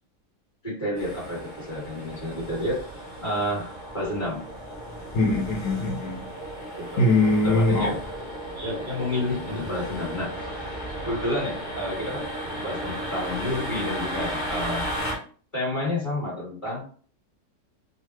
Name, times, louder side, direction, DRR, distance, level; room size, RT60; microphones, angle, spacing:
voice 1, 0.6-2.9 3.2-4.4 6.8-7.1 7.4-7.9 8.6-10.5 11.0-12.3 12.6-14.9 15.5-16.9, left 1 dB, 20° left, -7 dB, 1.9 m, -30 dB
sound 1, 1.0-15.1, equal, 40° left, 1.3 m, -34 dB
voice 2, 5.1-6.3 7.0-7.9, left 2 dB, 65° left, 0 dB, 1.5 m, -22 dB
3.9 x 2.4 x 3.1 m, 0.43 s
omnidirectional pair, 1.7 m